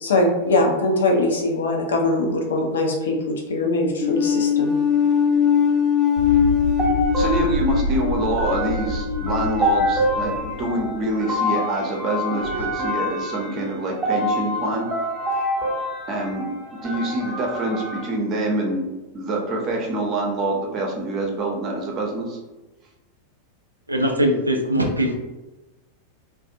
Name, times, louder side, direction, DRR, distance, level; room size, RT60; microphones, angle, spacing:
voice 1, 0.0-4.7, left 2 dB, 65° left, 1 dB, 0.5 m, -21 dB
sound 1, 4.0-10.4, left 7 dB, 10° left, 0.5 m, -22 dB
sound 2, 6.2-11.1 12.4-12.6, left 2 dB, 85° left, 0.9 m, -28 dB
sound 3, 6.8-18.1, equal, 15° right, 0.9 m, -27 dB
voice 2, 7.1-14.9 16.1-18.8 19.1-22.4, right 1 dB, 35° right, 0 dB, 0.6 m, -25 dB
voice 3, 23.9-25.1, equal, 85° right, 2 dB, 0.3 m, -21 dB
2.4 x 2.2 x 2.6 m, 1.1 s
figure-of-eight pair, 90°, 0 cm